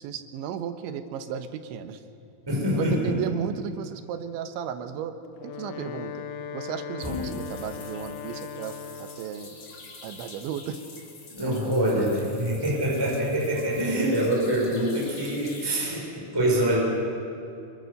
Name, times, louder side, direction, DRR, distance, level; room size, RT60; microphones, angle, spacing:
voice 1, 0.0-2.0 2.8-5.1 5.4-6.3 6.5-9.6 10.0-10.8 14.0-14.2, right 8 dB, 90° right, 8 dB, 3.5 m, -34 dB
voice 2, 2.5-3.1 7.0-7.4 11.3-16.8, equal, 5° right, -3 dB, 5.2 m, -25 dB
Wind instrument woodwind instrument, 5.2-9.5, left 7 dB, 75° left, 1.9 m, -38 dB
sound 1, 7.0-15.8, left 4 dB, 40° left, 3.3 m, -47 dB
25.0 x 23.5 x 6.7 m, 2.7 s
omnidirectional pair, 5.2 m